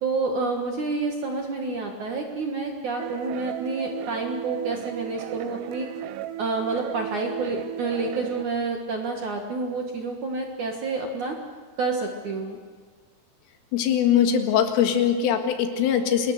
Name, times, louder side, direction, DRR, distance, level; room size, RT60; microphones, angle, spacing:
voice 1, 0.0-5.9 6.4-11.4 11.8-12.6, right 3 dB, 60° right, 2 dB, 2.1 m, -29 dB
sound 1, 3.0-8.4, right 11 dB, 90° right, 2.3 m, -35 dB
voice 2, 13.7-16.3, left 8 dB, 80° left, 5 dB, 4.3 m, -21 dB
27.0 x 20.0 x 6.6 m, 1.5 s
omnidirectional pair, 5.8 m